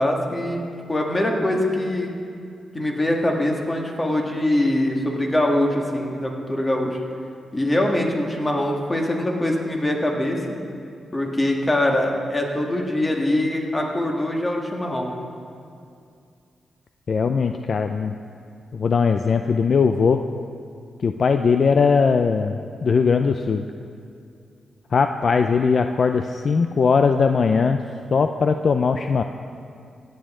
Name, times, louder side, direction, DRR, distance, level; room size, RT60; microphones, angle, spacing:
voice 1, 0.0-2.1 2.7-7.0 7.5-10.4 11.1-15.2, left 1 dB, 25° left, 0 dB, 1.8 m, -23 dB
voice 2, 17.1-18.1 18.7-20.2 21.0-23.6 24.9-27.8 28.1-29.2, left 5 dB, 55° left, 7 dB, 0.4 m, -20 dB
16.5 x 9.1 x 3.8 m, 2.4 s
cardioid pair, 70°, 0 cm